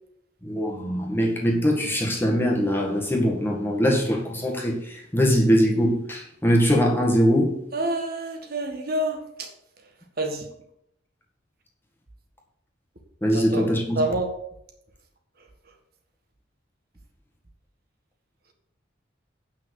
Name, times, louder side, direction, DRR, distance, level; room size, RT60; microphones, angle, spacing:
voice 1, 0.4-7.6 13.2-14.0, equal, 10° left, -1 dB, 1.8 m, -22 dB
voice 2, 7.7-9.5 10.2-10.4 13.3-13.7 14.0-14.3, right 1 dB, 50° right, 3 dB, 1.6 m, -27 dB
8.9 x 6.0 x 6.6 m, 0.75 s
head